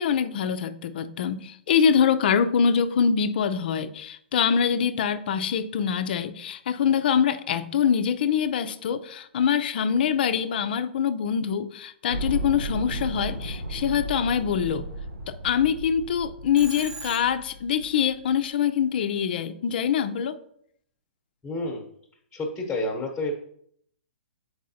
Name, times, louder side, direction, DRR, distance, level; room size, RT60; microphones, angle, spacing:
voice 1, 0.0-14.9 15.3-20.4, left 7 dB, 55° left, 11 dB, 0.5 m, -24 dB
sound 1, 12.1-18.4, right 1 dB, 80° right, 0.7 m, -35 dB
Telephone, 16.6-17.6, right 2 dB, 10° right, 0.8 m, -39 dB
voice 2, 21.4-21.8 22.3-23.3, left 2 dB, 10° left, 0 dB, 1.0 m, -29 dB
7.3 x 4.6 x 2.8 m, 0.69 s
hypercardioid pair, 125°, 6 cm